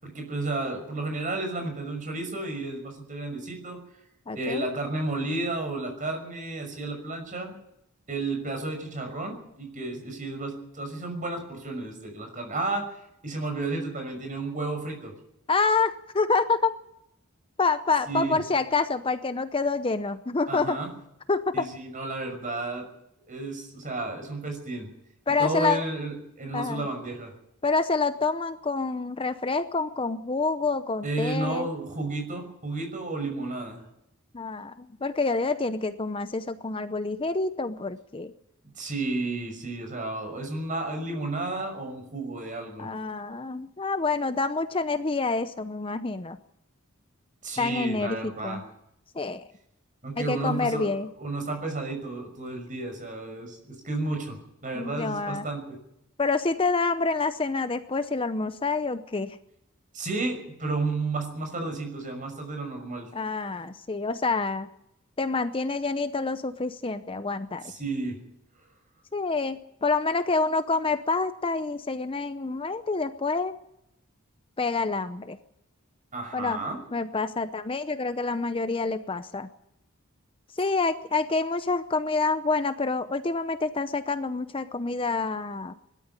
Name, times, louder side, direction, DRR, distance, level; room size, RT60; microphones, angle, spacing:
voice 1, 0.0-3.8 4.3-7.5 8.1-12.9 13.2-15.1 18.1-18.4 20.5-20.9 21.5-22.9 23.3-24.9 25.4-27.3 31.0-33.8 38.7-42.9 47.4-48.6 50.0-50.9 51.2-55.7 59.9-63.1 67.6-68.2 76.1-76.8, right 2 dB, 40° right, 4 dB, 5.9 m, -32 dB
voice 2, 4.3-4.7 15.5-16.8 17.6-20.8 21.3-21.7 25.3-25.8 26.5-26.8 27.6-31.7 34.3-38.3 42.8-46.4 47.6-48.6 49.1-49.4 50.2-51.1 54.7-55.4 56.2-59.4 63.1-64.7 65.2-67.6 69.1-73.6 74.6-75.4 76.3-76.6 76.9-79.5 80.6-85.7, left 3 dB, 25° left, 11 dB, 0.7 m, -27 dB
21.0 x 13.0 x 9.7 m, 0.80 s
head